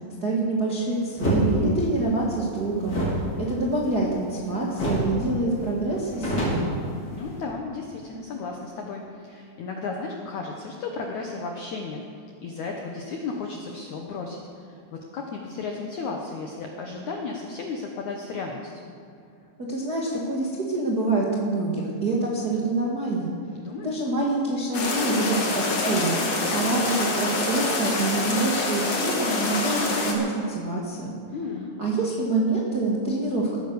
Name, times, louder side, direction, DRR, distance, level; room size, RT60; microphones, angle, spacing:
voice 1, 0.2-3.0 3.4-6.7 19.7-23.3 23.8-26.2 26.5-31.1 31.8-33.6, right 2 dB, 60° right, -3 dB, 1.0 m, -26 dB
sound 1, 1.2-1.4 2.8-4.4 4.8-5.1 5.4-5.5 5.9-7.4, equal, 25° left, 3.8 m, -27 dB
voice 2, 7.1-12.0 12.4-18.9 23.5-24.0 31.3-31.8, left 4 dB, 75° left, 1 dB, 1.7 m, -34 dB
sound 2, 24.7-30.1, left 2 dB, 45° left, 2.4 m, -26 dB
17.0 x 10.0 x 7.0 m, 2.5 s
omnidirectional pair, 4.9 m